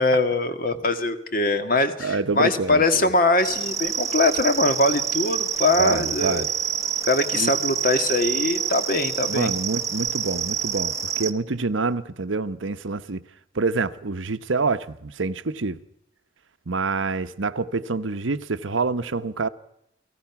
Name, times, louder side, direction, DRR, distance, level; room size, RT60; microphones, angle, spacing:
voice 1, 0.0-6.5 7.0-9.5, left 2 dB, 45° left, 1.8 m, -22 dB
voice 2, 2.0-3.1 5.8-6.5 7.3-7.5 9.3-13.2 13.5-15.8 16.7-19.5, right 3 dB, 85° right, 0.9 m, -26 dB
sound 1, 3.4-11.3, right 7 dB, 15° right, 0.8 m, -27 dB
29.5 x 18.0 x 6.0 m
head